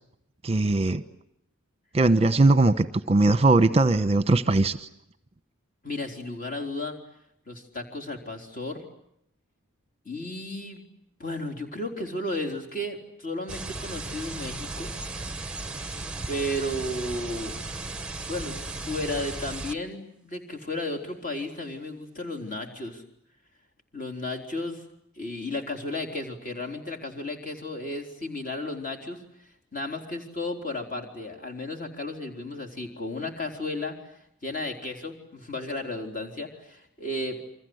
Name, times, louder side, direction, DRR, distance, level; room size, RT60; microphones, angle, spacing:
voice 1, 0.4-1.0 1.9-4.9, right 2 dB, 25° right, 13 dB, 1.0 m, -20 dB
voice 2, 5.8-7.0 7.5-8.8 10.1-10.8 11.2-14.9 16.3-17.6 18.3-23.0 23.9-24.8 25.2-29.2 29.7-34.0 34.4-37.4, left 1 dB, 40° left, 4 dB, 4.1 m, -33 dB
sound 1, 13.5-19.7, right 3 dB, 5° right, 1.0 m, -36 dB
29.0 x 25.0 x 8.0 m, 0.77 s
head